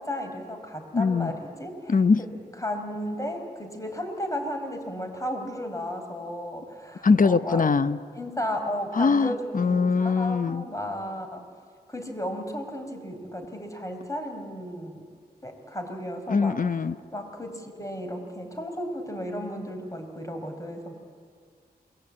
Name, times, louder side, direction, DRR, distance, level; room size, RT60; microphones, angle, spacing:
voice 1, 0.0-2.3 2.6-7.7 8.1-11.4 11.9-15.1 15.4-16.6 17.1-20.9, equal, 20° left, 4 dB, 5.0 m, -34 dB
voice 2, 0.9-1.3 1.9-2.2 7.0-8.0 8.9-10.6 16.3-17.0, left 4 dB, 50° left, 13 dB, 0.9 m, -22 dB
28.0 x 21.5 x 8.7 m, 2.1 s
cardioid pair, 55°, 17 cm